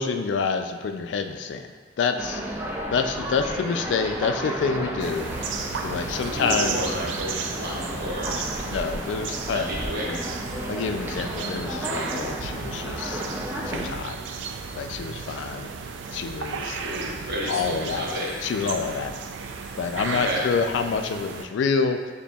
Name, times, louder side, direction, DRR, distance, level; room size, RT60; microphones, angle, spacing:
voice 1, 0.0-1.7 2.0-2.4 2.9-5.3 5.8-6.8 8.3-9.7 10.1-10.2 10.7-13.2 13.7-14.2 14.8-15.7 16.1-16.8 17.5-18.0 18.4-19.1 19.8-22.0, left 5 dB, 75° left, 7 dB, 0.3 m, -27 dB
sound 1, 2.2-13.9, equal, 10° right, 0.4 m, -33 dB
sound 2, 5.0-21.5, right 5 dB, 80° right, 0.3 m, -34 dB
voice 2, 6.2-8.4 9.5-10.1 16.7-18.4 20.1-20.4, equal, 65° right, -4 dB, 0.9 m, -31 dB
6.6 x 2.8 x 2.3 m, 1.4 s
head